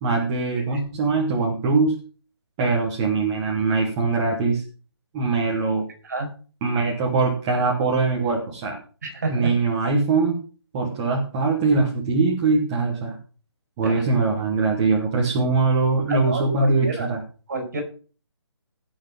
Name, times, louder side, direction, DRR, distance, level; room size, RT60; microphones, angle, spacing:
voice 1, 0.0-2.0 2.6-4.6 5.1-5.8 6.6-8.8 9.3-10.4 10.7-13.2 13.8-17.2, right 3 dB, 10° right, -3 dB, 1.1 m, -22 dB
voice 2, 9.0-9.5 13.8-14.0 16.1-17.1 17.5-17.8, right 3 dB, 40° right, 5 dB, 5.0 m, -29 dB
16.5 x 6.2 x 5.2 m, 0.38 s
hypercardioid pair, 180°, 14 cm